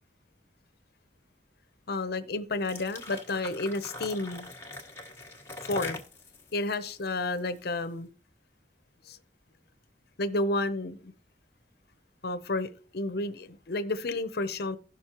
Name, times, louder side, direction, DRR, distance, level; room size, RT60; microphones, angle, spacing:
voice 1, 1.9-4.5 5.6-6.0 6.5-8.1 9.1-9.2 10.2-11.1 12.2-14.8, left 2 dB, 60° left, 0.7 m, -31 dB
sound 1, 2.5-7.8, left 2 dB, 15° left, 1.5 m, -42 dB
16.5 x 6.2 x 3.0 m
head